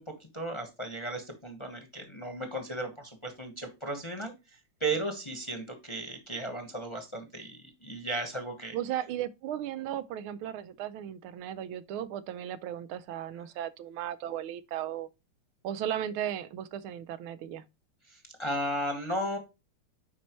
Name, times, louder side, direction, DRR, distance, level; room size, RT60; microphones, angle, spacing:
voice 1, 0.0-8.8 18.0-19.4, right 1 dB, 20° left, 1.0 m, -35 dB
voice 2, 8.7-15.1 15.6-17.6, right 11 dB, 90° right, 1.5 m, -36 dB
9.7 x 4.4 x 3.0 m
omnidirectional pair, 2.3 m